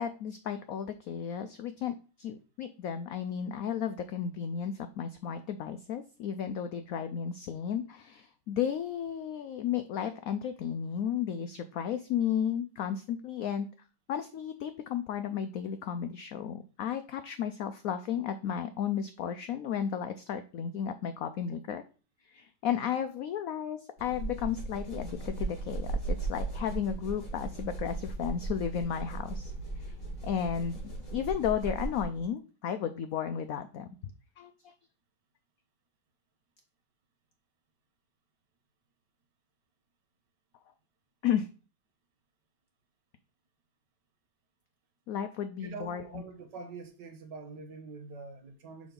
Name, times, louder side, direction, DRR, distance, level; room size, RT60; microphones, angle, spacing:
voice 1, 0.0-13.7 14.1-21.8 22.2-29.9 30.2-33.9 34.4-34.7 41.2-41.5 45.1-46.2, left 8 dB, 85° left, 0.7 m, -34 dB
sound 1, 24.0-32.3, right 3 dB, 55° left, 3.7 m, -37 dB
voice 2, 45.6-48.9, right 4 dB, 70° right, 1.5 m, -45 dB
6.1 x 3.8 x 5.1 m
omnidirectional pair, 2.0 m